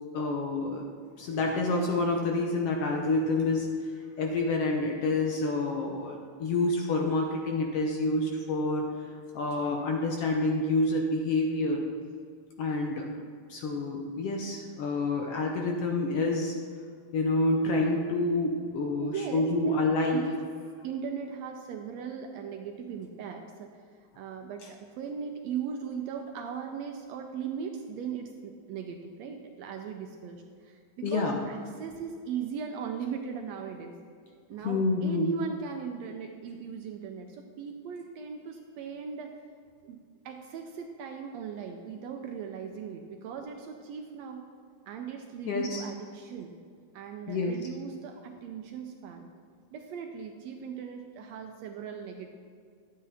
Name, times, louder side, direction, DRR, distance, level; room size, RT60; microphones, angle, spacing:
voice 1, 0.1-0.9 1.2-3.7 4.2-8.8 9.3-11.8 12.6-13.0 13.5-16.5 17.1-20.2 31.0-31.4 34.6-35.3 45.4-45.8 47.3-47.5, left 2 dB, 70° left, 1 dB, 1.5 m, -28 dB
voice 2, 19.0-19.8 20.1-20.4 20.8-23.7 24.0-34.0 34.5-39.4 39.8-44.4 44.9-46.5 46.9-49.3 49.7-52.3, right 7 dB, 75° right, 4 dB, 1.6 m, -38 dB
12.0 x 8.5 x 3.5 m, 2.1 s
omnidirectional pair, 3.6 m